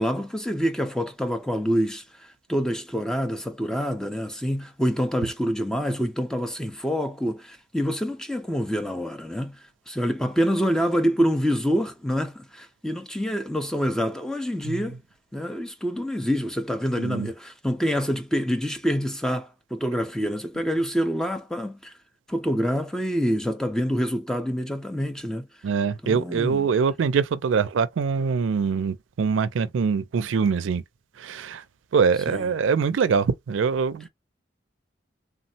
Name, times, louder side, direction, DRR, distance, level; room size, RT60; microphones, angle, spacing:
voice 1, 0.0-15.0 15.3-21.9 22.3-25.5 26.0-26.7 32.3-32.5, equal, 5° left, 0.4 m, -26 dB
voice 2, 17.0-17.3 25.6-30.8 31.2-31.6 31.9-34.1, right 5 dB, 90° right, 0.4 m, -23 dB
3.5 x 2.0 x 2.6 m
head